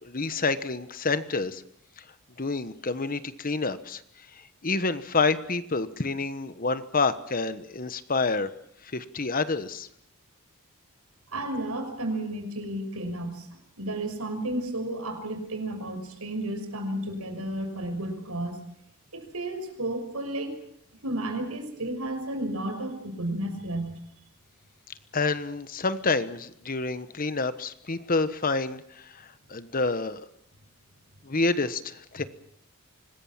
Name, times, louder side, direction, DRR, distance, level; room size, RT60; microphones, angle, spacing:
voice 1, 0.0-1.6 2.0-2.1 2.4-4.0 4.3-8.5 8.8-9.9 25.1-30.2 31.2-32.2, left 3 dB, 40° left, 13 dB, 1.2 m, -28 dB
voice 2, 11.3-18.6 19.1-20.6 21.0-24.0, right 1 dB, 80° right, 6 dB, 5.9 m, -32 dB
25.5 x 20.5 x 7.4 m, 0.72 s
head